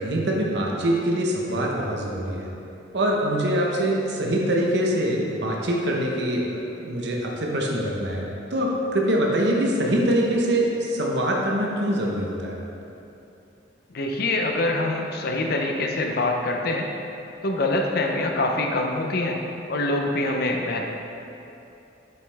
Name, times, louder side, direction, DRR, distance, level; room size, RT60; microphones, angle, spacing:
voice 1, 0.0-2.5 2.9-8.2 8.5-12.6, right 1 dB, 60° right, -2 dB, 0.9 m, -24 dB
voice 2, 13.9-16.9 17.4-19.4 19.7-20.8, left 2 dB, 55° left, 2 dB, 0.6 m, -24 dB
8.0 x 5.3 x 3.4 m, 2.8 s
head